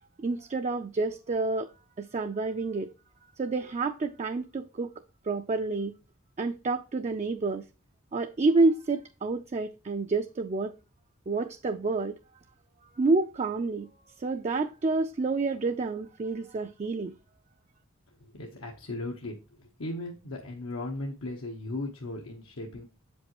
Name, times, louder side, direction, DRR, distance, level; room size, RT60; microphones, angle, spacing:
voice 1, 0.2-2.9 3.4-4.9 5.2-5.9 6.4-7.6 8.1-10.7 11.3-12.1 13.0-13.9 14.2-17.1, right 3 dB, 35° right, 0.4 m, -28 dB
voice 2, 18.3-19.4 19.8-22.9, left 2 dB, 85° left, 1.0 m, -36 dB
7.6 x 5.2 x 2.9 m
head